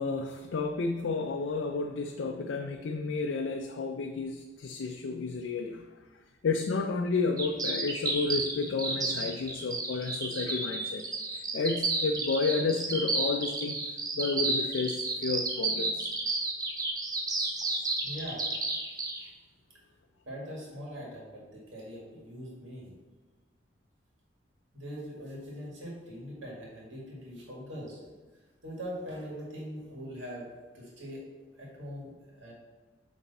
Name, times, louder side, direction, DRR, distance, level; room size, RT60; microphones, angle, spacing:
voice 1, 0.0-5.9 6.4-11.0 11.3-13.8 14.2-16.1 17.5-17.9, left 4 dB, 80° left, 4 dB, 0.4 m, -31 dB
sound 1, 7.4-19.2, right 3 dB, 20° right, 0.7 m, -31 dB
voice 2, 18.0-18.5 20.3-23.0 24.7-28.0 28.6-30.5 30.7-31.2 31.6-32.5, equal, 90° right, -4 dB, 1.9 m, -42 dB
8.2 x 3.4 x 4.1 m, 1.3 s
head